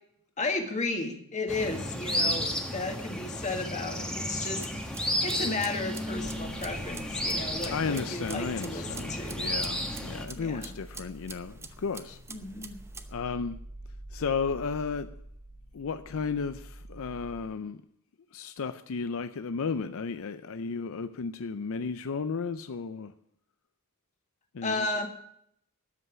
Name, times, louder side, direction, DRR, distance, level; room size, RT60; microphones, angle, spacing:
voice 1, 0.4-9.4 10.4-10.7 12.3-12.8 24.6-25.1, left 3 dB, 35° left, 1.7 m, -34 dB
sound 1, 1.5-10.3, left 1 dB, 5° left, 1.2 m, -33 dB
sound 2, 4.4-13.1, right 4 dB, 10° right, 0.8 m, -47 dB
sound 3, 6.2-17.4, right 1 dB, 55° right, 1.7 m, -47 dB
voice 2, 7.7-12.2 13.1-13.6 14.1-15.1 15.7-17.8 18.3-23.1 24.5-25.1, left 5 dB, 65° left, 0.5 m, -34 dB
13.0 x 5.6 x 9.4 m
head